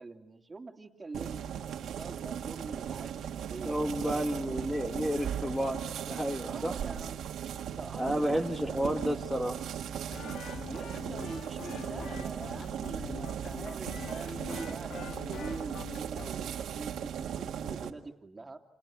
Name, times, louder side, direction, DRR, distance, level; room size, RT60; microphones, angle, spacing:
voice 1, 0.0-1.5 2.0-3.1 3.5-4.2 6.4-7.3 7.8-9.2 10.7-18.6, right 3 dB, 25° right, 3 dB, 2.9 m, -44 dB
sound 1, 1.1-17.9, right 9 dB, 80° right, 1.9 m, -38 dB
voice 2, 3.6-5.8 6.1-6.7 8.0-9.6, equal, 5° left, 4 dB, 1.6 m, -31 dB
sound 2, 10.1-16.3, left 6 dB, 75° left, 1.3 m, -44 dB
29.5 x 29.0 x 6.2 m, 0.84 s
cardioid pair, 95°, 0 cm